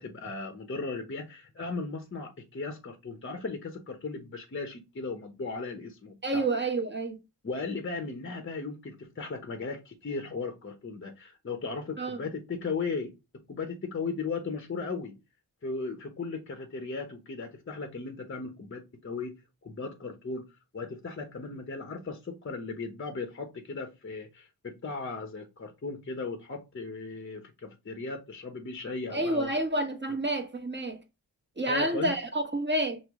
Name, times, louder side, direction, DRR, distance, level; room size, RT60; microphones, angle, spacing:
voice 1, 0.0-6.5 7.4-15.2 15.6-19.4 19.6-20.5 20.7-29.5 31.7-32.1, left 4 dB, 30° left, 0.8 m, -37 dB
voice 2, 6.2-7.2 12.0-12.2 29.1-31.0 31.6-33.0, right 2 dB, 25° right, 1.2 m, -29 dB
6.0 x 2.1 x 3.5 m
cardioid pair, 65°, 41 cm